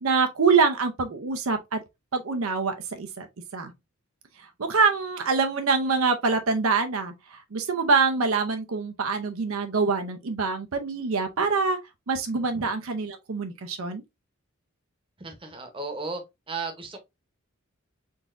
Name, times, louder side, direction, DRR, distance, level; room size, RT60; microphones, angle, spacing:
voice 1, 0.0-1.8 2.1-3.3 3.5-3.7 4.4-11.8 12.1-14.0, right 4 dB, 75° right, 0.6 m, -25 dB
voice 2, 15.2-16.2 16.5-17.0, right 3 dB, 25° right, 0.9 m, -34 dB
3.9 x 3.5 x 2.5 m
head